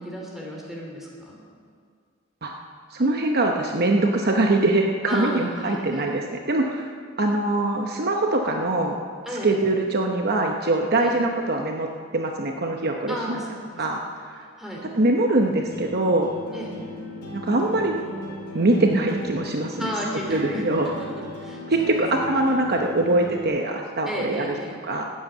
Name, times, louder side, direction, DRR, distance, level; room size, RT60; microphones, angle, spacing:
voice 1, 0.0-1.4 5.1-6.1 9.2-9.6 11.0-11.2 13.1-13.8 14.6-14.9 16.5-16.7 19.8-21.1 21.4-21.9 24.0-24.8, equal, ahead, -3 dB, 2.8 m, -33 dB
voice 2, 2.9-6.9 7.2-9.0 9.4-11.9 12.1-13.4 13.8-14.0 14.9-16.3 17.3-18.0 18.5-19.9 20.3-20.9 21.7-24.5 24.8-25.1, right 2 dB, 50° right, 2 dB, 0.8 m, -23 dB
sound 1, 15.5-23.5, left 1 dB, 55° left, 4.2 m, -37 dB
13.0 x 8.8 x 8.0 m, 2.1 s
head